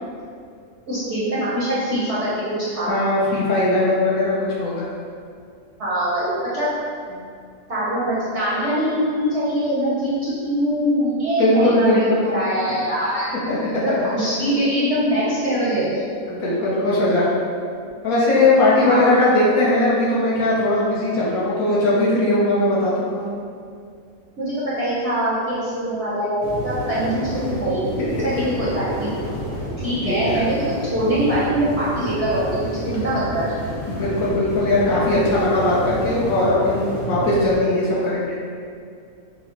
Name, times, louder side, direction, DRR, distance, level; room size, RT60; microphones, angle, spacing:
voice 1, 0.9-2.3 2.7-3.0 5.8-6.7 7.7-13.3 13.8-16.0 18.7-19.1 24.4-27.9 28.2-29.1 29.8-33.6, right 1 dB, 55° right, -10 dB, 0.8 m, -23 dB
voice 2, 2.9-4.9 7.1-7.2 11.4-12.3 13.5-13.9 16.3-17.3 18.0-23.2 28.2-28.3 30.0-30.4 33.9-38.4, left 2 dB, 65° left, -7 dB, 1.1 m, -19 dB
sound 1, 26.4-37.5, equal, 25° left, 0.7 m, -30 dB
5.4 x 2.0 x 2.8 m, 2.3 s
omnidirectional pair, 1.9 m